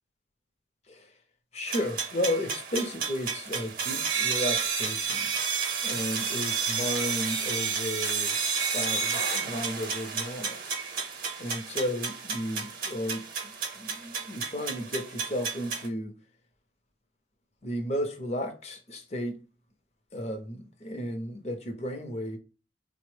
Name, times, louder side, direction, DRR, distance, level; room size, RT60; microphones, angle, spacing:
voice 1, 1.5-5.3 5.8-8.3 8.7-10.6 11.4-16.1 17.6-19.4 20.1-22.4, left 1 dB, 35° left, 0.6 m, -33 dB
sound 1, 1.7-15.9, right 5 dB, 50° right, 0.7 m, -31 dB
3.9 x 2.0 x 3.1 m
head